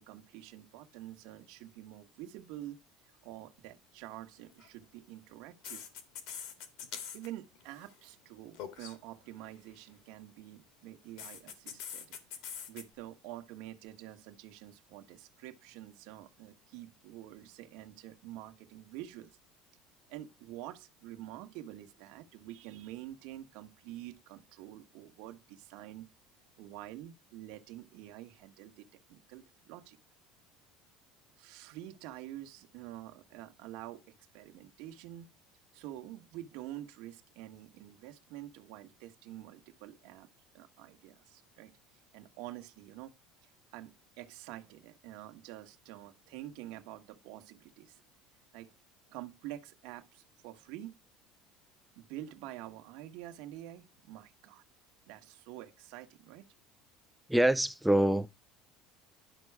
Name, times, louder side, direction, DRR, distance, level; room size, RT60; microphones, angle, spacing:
voice 1, 0.0-2.8 3.0-5.9 7.1-12.2 12.4-19.4 20.1-26.1 26.6-30.0 31.4-34.0 34.3-35.3 35.7-40.3 40.5-43.1 43.4-48.0 48.5-48.7 49.1-50.9 51.9-54.6 55.1-56.5, right 14 dB, 60° right, 1.4 m, -47 dB
sound 1, 4.5-4.7 5.6-7.3 7.6-7.9 8.5-9.0 11.2-12.8, left 8 dB, 60° left, 2.2 m, -43 dB
voice 2, 57.3-58.3, right 1 dB, ahead, 0.4 m, -25 dB
11.5 x 6.2 x 4.8 m
cardioid pair, 175°, 0 cm